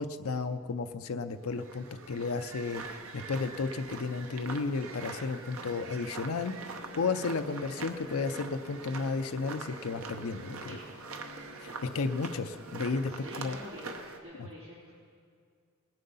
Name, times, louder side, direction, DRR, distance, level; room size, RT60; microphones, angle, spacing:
voice 1, 0.0-10.8 11.6-13.6 14.4-14.5, left 4 dB, 75° left, 8 dB, 0.5 m, -33 dB
sound 1, 1.4-14.2, right 4 dB, 70° right, 1.0 m, -44 dB
sound 2, 5.9-13.9, equal, 10° right, 2.4 m, -52 dB
voice 2, 10.6-11.3 13.1-13.9 14.2-14.9, left 1 dB, 55° right, -12 dB, 4.2 m, -48 dB
19.5 x 7.8 x 5.5 m, 2.2 s
head